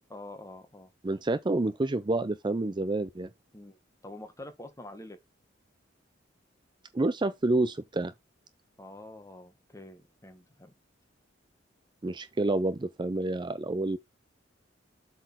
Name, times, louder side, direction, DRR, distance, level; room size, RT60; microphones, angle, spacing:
voice 1, 0.1-0.9 3.5-3.8 4.0-5.2 8.8-10.7, left 1 dB, 15° left, 1.5 m, -46 dB
voice 2, 1.0-3.3 6.9-8.1 12.0-14.0, right 2 dB, 25° right, 0.5 m, -28 dB
7.7 x 4.2 x 4.5 m
head